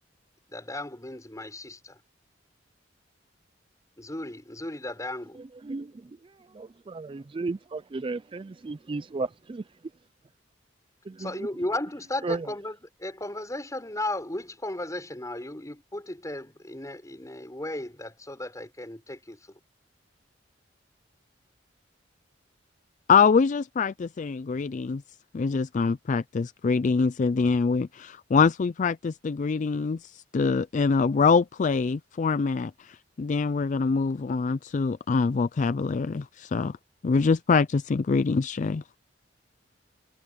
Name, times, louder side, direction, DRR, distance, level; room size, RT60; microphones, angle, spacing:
voice 1, 0.5-2.0 4.0-5.4 11.2-19.4, left 1 dB, 15° left, 6.0 m, -35 dB
voice 2, 6.5-9.6 11.1-11.3 12.2-12.5, right 3 dB, 30° right, 0.4 m, -33 dB
voice 3, 23.1-25.0 25.3-36.8 37.0-38.8, left 5 dB, 40° left, 0.4 m, -24 dB
head